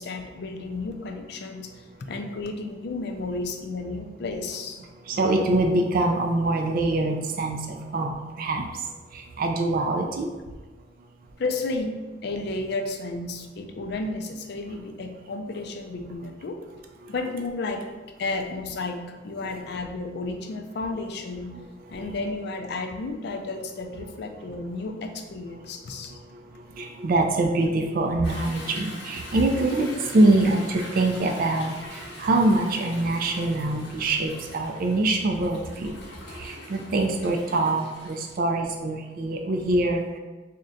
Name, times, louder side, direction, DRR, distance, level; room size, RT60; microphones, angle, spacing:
voice 1, 0.0-4.8 11.4-16.6 17.1-17.9 18.2-21.5 21.9-26.1, left 3 dB, 65° left, 5 dB, 0.4 m, -32 dB
voice 2, 5.1-8.7 9.1-10.3 21.5-21.6 21.9-22.1 26.7-35.9 36.3-40.2, right 2 dB, 50° right, 2 dB, 0.3 m, -24 dB
Toilet flush / Drip / Trickle dribble, 28.2-38.3, left 1 dB, 85° left, 0.9 m, -42 dB
3.6 x 2.2 x 3.8 m, 1.3 s
head